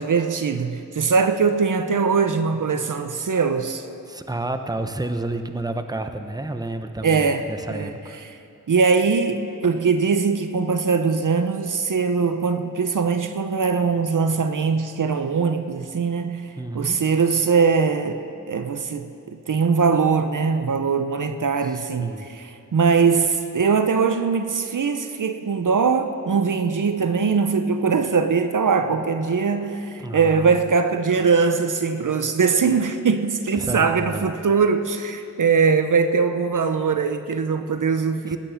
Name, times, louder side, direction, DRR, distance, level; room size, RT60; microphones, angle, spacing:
voice 1, 0.0-3.9 7.0-7.9 8.2-8.4 8.7-16.4 16.7-38.4, right 5 dB, 70° right, 9 dB, 0.8 m, -21 dB
voice 2, 4.1-8.2 16.6-17.0 21.7-22.3 30.0-30.6 33.6-34.3 38.3-38.4, right 2 dB, 10° right, 8 dB, 0.9 m, -30 dB
18.5 x 9.1 x 5.8 m, 2.7 s
cardioid pair, 45°, 32 cm